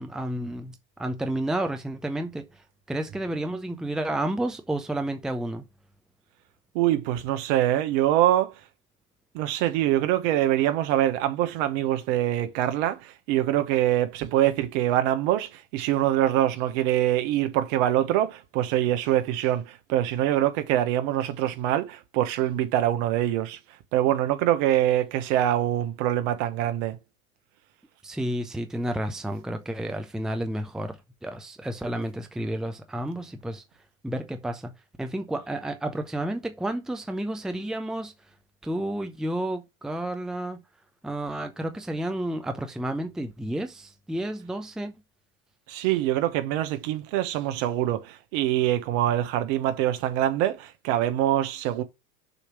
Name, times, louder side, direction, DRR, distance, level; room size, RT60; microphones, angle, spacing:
voice 1, 0.0-2.4 2.9-5.6 28.0-33.6 34.0-34.7 35.0-38.1 38.6-40.6 41.0-44.9, right 1 dB, ahead, 0.8 m, -31 dB
voice 2, 6.7-8.5 9.3-23.6 23.9-27.0 45.7-51.8, right 12 dB, 60° right, 1.4 m, -24 dB
7.0 x 3.2 x 5.9 m
hypercardioid pair, 100°, 43 cm